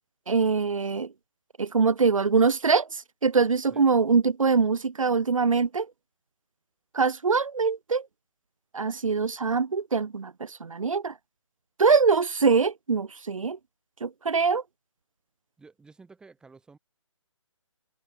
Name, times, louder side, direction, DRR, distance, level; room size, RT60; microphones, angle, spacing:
voice 1, 0.3-1.1 1.6-5.9 6.9-8.1 8.7-11.1 11.8-13.6 14.0-14.6, right 5 dB, 85° right, 0.5 m, -23 dB
voice 2, 15.6-16.8, right 4 dB, 5° right, 4.6 m, -52 dB
figure-of-eight pair, 145°, 17 cm